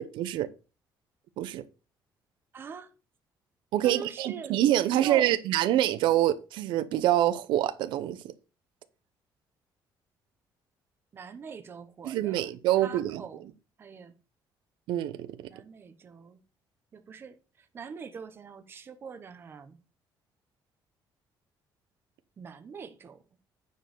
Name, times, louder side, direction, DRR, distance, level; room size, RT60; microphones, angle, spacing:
voice 1, 0.2-0.5 1.4-1.6 3.7-8.2 12.0-13.4 14.9-15.3, right 13 dB, 85° right, 0.8 m, -26 dB
voice 2, 2.5-2.9 3.8-4.5 4.9-5.4 11.1-12.5 12.8-13.4 13.8-14.1 15.5-16.4 16.9-17.3 17.7-19.8 22.4-23.2, right 6 dB, 30° right, 0.9 m, -42 dB
9.3 x 4.7 x 6.7 m
cardioid pair, 180°, 8 cm